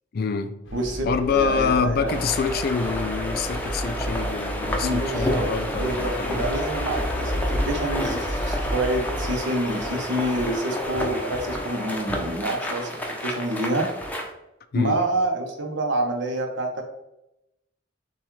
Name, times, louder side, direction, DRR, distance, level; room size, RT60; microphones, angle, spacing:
voice 1, 0.1-0.5 1.1-6.4 14.7-15.0, left 5 dB, 55° left, 0.4 m, -26 dB
sound 1, 0.6-9.2, equal, 85° left, 0.8 m, -32 dB
voice 2, 0.7-2.1 4.8-12.9 13.2-13.9 14.7-16.8, right 1 dB, 75° right, 0.9 m, -27 dB
sound 2, 2.1-14.3, left 1 dB, 10° left, 0.6 m, -30 dB
6.9 x 2.3 x 3.1 m
head